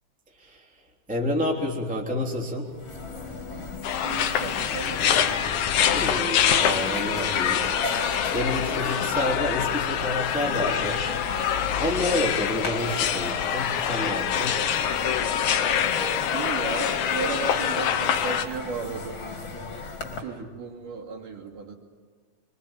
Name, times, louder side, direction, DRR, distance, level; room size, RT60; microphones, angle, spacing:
voice 1, 1.1-2.7 5.9-7.6 8.3-11.0 11.3-14.6, left 1 dB, ahead, -1 dB, 2.8 m, -29 dB
sound 1, 2.5-2.6 2.7-20.2, left 4 dB, 35° left, 3.1 m, -36 dB
sound 2, 2.6-7.9, right 6 dB, 80° right, 4.6 m, -46 dB
sound 3, 3.8-18.5, left 9 dB, 65° left, 2.2 m, -25 dB
voice 2, 4.0-5.4 12.4-12.5 16.3-19.2 20.2-21.7, right 4 dB, 60° right, -2 dB, 4.0 m, -35 dB
25.0 x 24.5 x 8.9 m, 1.5 s
omnidirectional pair, 4.3 m